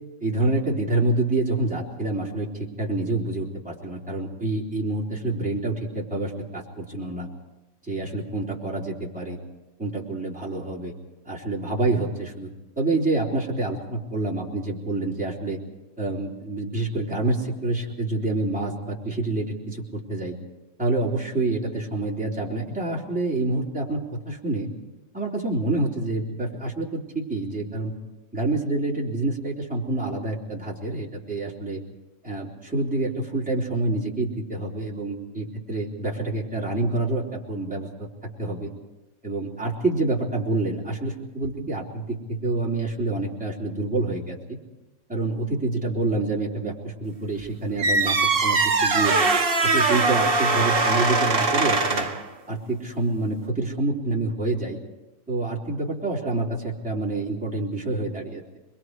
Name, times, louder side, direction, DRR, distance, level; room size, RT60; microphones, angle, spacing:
voice 1, 0.2-7.3 7.8-9.4 9.8-10.9 11.2-15.6 16.0-20.3 20.8-24.7 25.1-27.9 28.3-31.8 32.2-38.1 38.4-38.7 39.2-44.6 45.1-48.2 48.4-49.1 49.6-52.1 52.5-54.8 55.3-58.6, right 2 dB, 5° right, -5 dB, 3.1 m, -27 dB
sound 1, 47.8-52.2, right 3 dB, 35° right, 0.9 m, -21 dB
27.5 x 22.0 x 4.8 m, 1.0 s
omnidirectional pair, 3.6 m